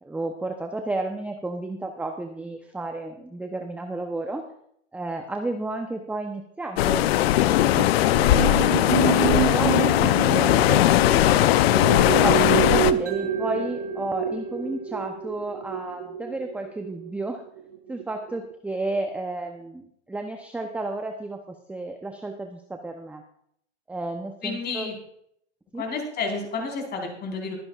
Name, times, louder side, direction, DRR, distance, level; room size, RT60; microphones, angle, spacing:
voice 1, 0.0-4.5 4.9-7.1 7.4-7.6 8.1-11.4 11.8-17.4 17.9-21.4 21.7-23.2 23.9-24.9 25.7-25.8, right 2 dB, 5° right, 4 dB, 0.8 m, -32 dB
sound 1, 6.8-12.9, left 14 dB, 60° left, 0.7 m, -19 dB
sound 2, 7.7-18.0 18.3-18.5, right 12 dB, 55° right, 0.9 m, -29 dB
Mallet percussion, 13.1-17.2, right 2 dB, 75° right, 3.0 m, -37 dB
voice 2, 24.4-25.0 25.8-27.6, left 4 dB, 30° left, 1 dB, 4.5 m, -30 dB
22.5 x 9.7 x 2.5 m, 0.70 s
hypercardioid pair, 115°, 35 cm